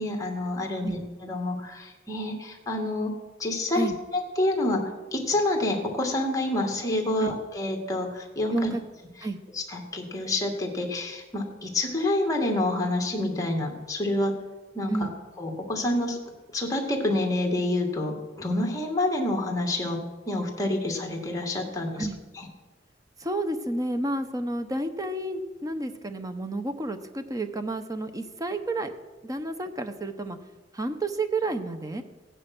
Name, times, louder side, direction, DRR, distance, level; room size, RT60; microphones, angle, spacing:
voice 1, 0.0-3.1 3.4-3.9 4.1-8.7 9.6-14.3 14.7-15.1 15.4-16.2 16.5-22.1 22.4-22.5, left 1 dB, 20° left, 1 dB, 2.3 m, -28 dB
voice 2, 8.5-8.8 9.2-9.4 14.9-15.1 22.0-22.2 23.2-28.9 29.2-30.4 30.7-32.0, right 2 dB, 20° right, 8 dB, 1.0 m, -30 dB
16.0 x 9.8 x 6.2 m, 1.2 s
head